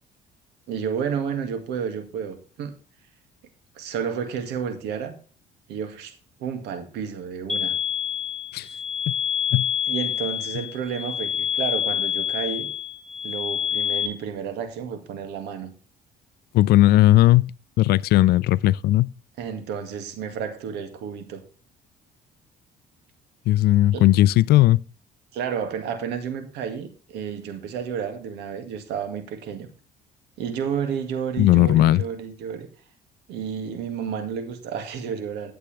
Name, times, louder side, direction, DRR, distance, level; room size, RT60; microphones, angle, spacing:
voice 1, 0.7-2.7 3.7-5.1 5.7-6.1 6.4-7.7 9.9-12.7 13.2-15.7 19.4-21.4 23.9-24.1 25.3-29.7 30.4-32.7 33.3-35.5, right 7 dB, 85° right, 2.1 m, -31 dB
sound 1, 7.5-14.1, left 9 dB, 5° left, 3.1 m, -27 dB
voice 2, 16.5-17.5 17.8-19.1 23.5-24.8 31.4-32.0, left 15 dB, 70° left, 0.4 m, -17 dB
12.0 x 8.0 x 3.3 m
cardioid pair, 110°, 17 cm